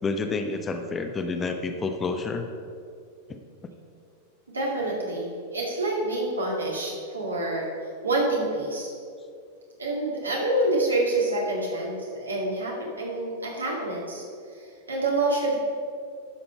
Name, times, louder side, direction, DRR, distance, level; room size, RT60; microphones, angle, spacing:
voice 1, 0.0-2.5, left 3 dB, 20° left, 6 dB, 0.8 m, -29 dB
voice 2, 4.5-7.7 8.0-8.9 9.8-14.2 14.6-15.6, right 2 dB, 75° right, -2 dB, 2.1 m, -27 dB
11.5 x 5.5 x 5.4 m, 2.4 s
figure-of-eight pair, 90°, 0 cm